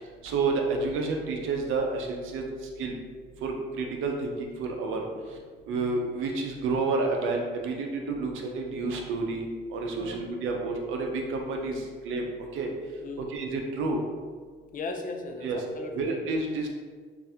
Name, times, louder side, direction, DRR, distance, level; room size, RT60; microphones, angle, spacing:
voice 1, 0.0-2.5 2.8-3.0 3.4-5.0 5.7-12.7 13.2-14.0 15.4-15.6 15.9-16.7, right 3 dB, 85° right, 1 dB, 0.6 m, -30 dB
voice 2, 13.0-13.3 14.7-16.2, left 3 dB, 45° left, 4 dB, 0.4 m, -37 dB
3.2 x 2.5 x 2.7 m, 1.5 s
cardioid pair, 90°, 20 cm